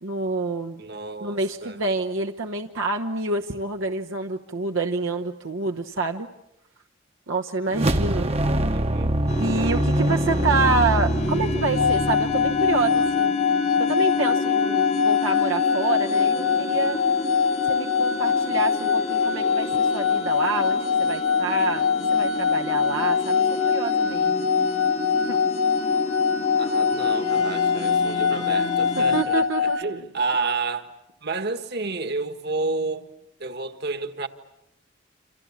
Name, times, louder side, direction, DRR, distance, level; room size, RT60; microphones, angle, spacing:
voice 1, 0.0-0.8 1.2-6.3 7.3-8.3 9.4-13.3 13.8-17.0 17.7-24.5 25.3-25.4 29.0-29.8, right 3 dB, 75° right, 1.0 m, -27 dB
voice 2, 0.8-1.8 8.7-9.1 26.6-31.0 31.2-33.1 33.4-34.3, right 3 dB, 55° right, 1.6 m, -30 dB
sound 1, 7.7-13.1, right 1 dB, 30° right, 1.0 m, -24 dB
sound 2, 9.3-29.2, left 3 dB, 35° left, 1.0 m, -30 dB
sound 3, 11.7-29.8, left 6 dB, 75° left, 1.3 m, -23 dB
28.0 x 27.0 x 7.3 m
head